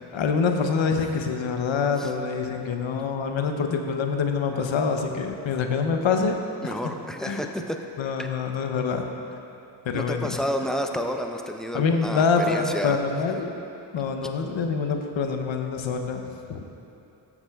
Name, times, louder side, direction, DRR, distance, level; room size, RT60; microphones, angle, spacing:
voice 1, 0.1-6.4 6.6-6.7 7.2-7.5 8.0-9.0 9.8-10.4 11.7-13.5 13.9-16.2 16.5-16.6, left 5 dB, 65° left, 5 dB, 0.8 m, -25 dB
voice 2, 6.6-7.8 8.2-8.3 9.9-13.0, equal, ahead, 4 dB, 0.5 m, -30 dB
12.0 x 7.2 x 2.3 m, 2.9 s
cardioid pair, 50°, 50 cm